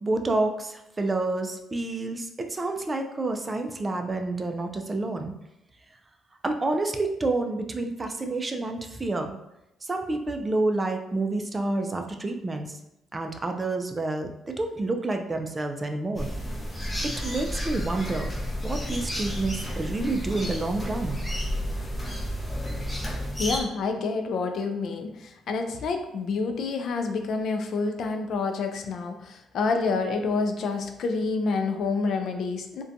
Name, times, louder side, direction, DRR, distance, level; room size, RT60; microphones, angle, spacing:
voice 1, 0.0-5.3 6.4-9.4 9.8-12.7 13.1-16.3 17.2-18.3 18.6-21.2, right 2 dB, 25° right, 5 dB, 0.3 m, -29 dB
sound 1, 16.2-23.6, equal, 15° left, 0.6 m, -31 dB
voice 2, 23.4-32.8, left 4 dB, 65° left, 5 dB, 0.3 m, -28 dB
2.5 x 2.2 x 2.6 m, 0.88 s
cardioid pair, 90°, 0 cm